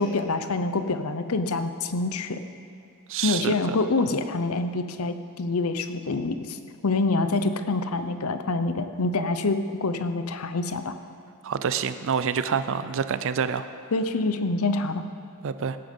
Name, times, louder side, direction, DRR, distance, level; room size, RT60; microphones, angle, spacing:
voice 1, 0.0-2.4 3.2-6.6 6.8-10.9 13.9-15.0, left 3 dB, 75° left, 10 dB, 0.7 m, -26 dB
voice 2, 3.1-3.6 11.4-13.7 15.4-15.8, right 6 dB, 60° right, 12 dB, 0.5 m, -27 dB
17.5 x 9.0 x 5.3 m, 2.4 s
head